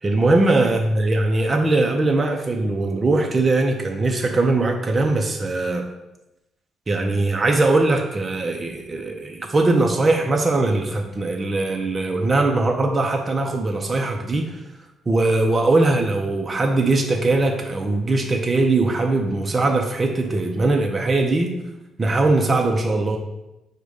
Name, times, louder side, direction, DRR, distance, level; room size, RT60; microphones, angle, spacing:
voice 1, 0.0-5.9 6.9-14.6 15.1-21.6 22.0-23.2, right 2 dB, 30° right, 2 dB, 0.4 m, -20 dB
5.0 x 2.2 x 4.8 m, 0.94 s
cardioid pair, 90°, 0 cm